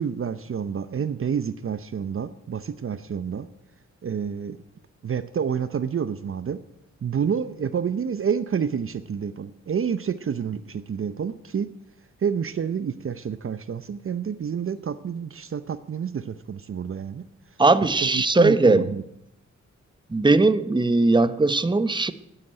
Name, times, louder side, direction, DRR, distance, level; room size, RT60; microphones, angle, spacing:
voice 1, 0.0-3.5 4.0-4.6 5.0-6.6 7.0-11.7 12.2-17.2 17.8-19.0, right 7 dB, 45° right, 0.7 m, -28 dB
voice 2, 17.6-18.9 20.1-22.1, right 3 dB, 15° right, 0.9 m, -19 dB
10.5 x 9.9 x 10.0 m
cardioid pair, 65°, 29 cm